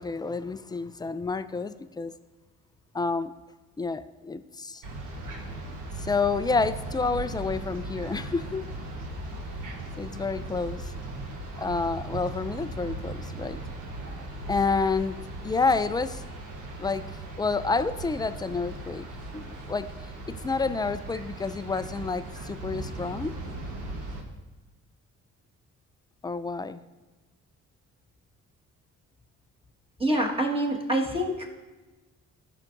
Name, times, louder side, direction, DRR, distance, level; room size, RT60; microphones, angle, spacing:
voice 1, 0.0-2.1 2.9-3.3 3.8-4.8 6.0-8.6 10.0-10.9 11.6-13.6 14.5-15.2 15.4-16.2 16.8-17.0 17.4-19.1 19.3-19.9 20.4-23.3 26.2-26.8, left 4 dB, 15° left, 12 dB, 0.3 m, -29 dB
sound 1, 4.8-24.2, right 2 dB, 90° right, 1.3 m, -38 dB
voice 2, 30.0-31.5, right 1 dB, 20° right, -1 dB, 1.6 m, -26 dB
14.0 x 5.9 x 2.6 m, 1.2 s
cardioid pair, 90°, 30 cm